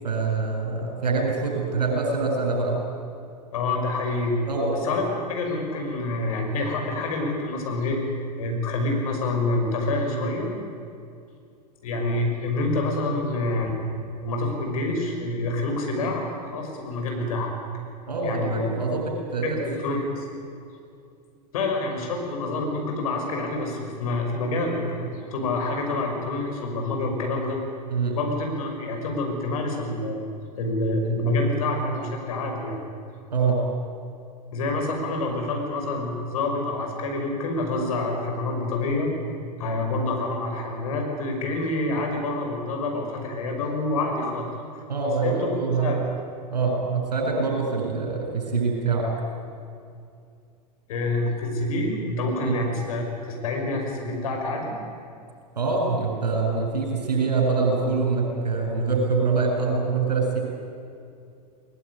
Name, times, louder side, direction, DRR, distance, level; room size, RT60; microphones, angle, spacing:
voice 1, 0.0-2.8 4.5-4.7 18.1-20.0 27.9-28.2 33.3-33.6 44.9-46.0 46.5-49.1 52.4-52.6 55.5-60.4, right 4 dB, 75° right, 0 dB, 7.9 m, -25 dB
voice 2, 3.5-4.4 4.7-8.0 8.4-10.5 11.8-13.7 14.2-17.5 18.2-18.7 19.4-20.3 21.5-27.6 28.1-30.2 30.6-32.8 34.5-39.1 39.6-44.8 45.2-45.5 45.8-46.0 50.9-54.7, left 2 dB, 55° left, 2 dB, 5.9 m, -27 dB
20.5 x 20.5 x 9.8 m, 2.4 s
figure-of-eight pair, 95°, 21 cm